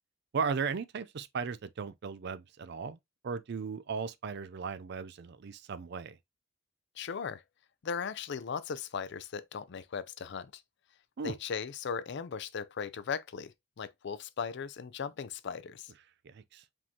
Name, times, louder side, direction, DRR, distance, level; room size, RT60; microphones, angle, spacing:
voice 1, 0.3-3.0 3.2-6.2 11.2-11.3 16.2-16.6, right 5 dB, 55° right, 0.4 m, -36 dB
voice 2, 7.0-7.4 7.8-10.6 11.2-13.5 13.8-15.9, left 6 dB, 55° left, 0.4 m, -37 dB
5.0 x 3.6 x 2.8 m
head